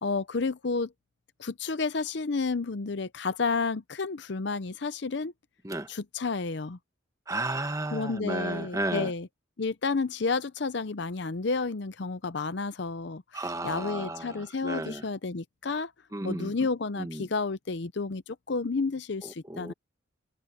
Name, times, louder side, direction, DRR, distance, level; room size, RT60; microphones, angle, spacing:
voice 1, 0.0-0.9 1.4-5.3 5.9-6.8 7.9-9.3 9.6-15.9 16.2-19.7, left 4 dB, 60° left, 0.6 m, -31 dB
voice 2, 7.3-9.1 13.3-15.0 16.1-16.5 17.0-17.3 19.2-19.7, right 2 dB, 15° right, 1.4 m, -33 dB
head